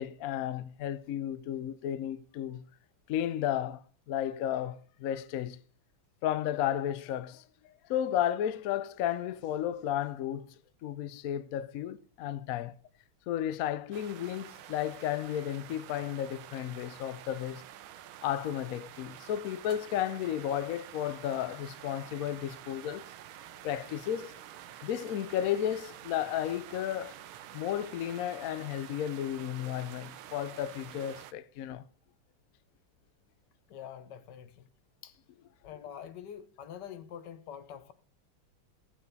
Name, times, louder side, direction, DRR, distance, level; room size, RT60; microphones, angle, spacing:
voice 1, 0.0-2.6 3.1-5.6 6.2-10.5 10.8-12.7 13.3-17.6 18.2-23.0 23.6-24.4 24.8-27.1 27.5-31.8, left 11 dB, 80° left, 0.7 m, -33 dB
sound 1, 13.9-31.3, right 12 dB, 85° right, 1.5 m, -49 dB
voice 2, 33.7-34.7 35.0-35.2 35.6-37.9, left 9 dB, 65° left, 1.3 m, -45 dB
15.5 x 7.7 x 4.0 m
omnidirectional pair, 2.2 m